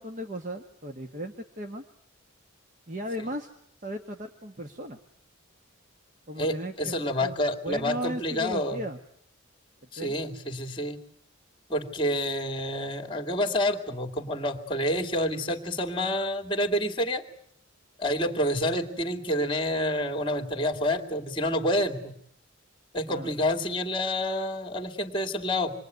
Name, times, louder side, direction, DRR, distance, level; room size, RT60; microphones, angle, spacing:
voice 1, 0.0-1.8 2.9-3.5 3.8-5.0 6.3-7.4 7.6-9.0 10.0-10.1 23.1-23.3, equal, 40° right, 5 dB, 1.5 m, -36 dB
voice 2, 6.4-8.8 9.9-11.0 11.7-17.2 18.0-22.1 22.9-25.7, left 1 dB, 25° left, 3 dB, 2.6 m, -28 dB
27.0 x 21.5 x 9.5 m, 0.69 s
head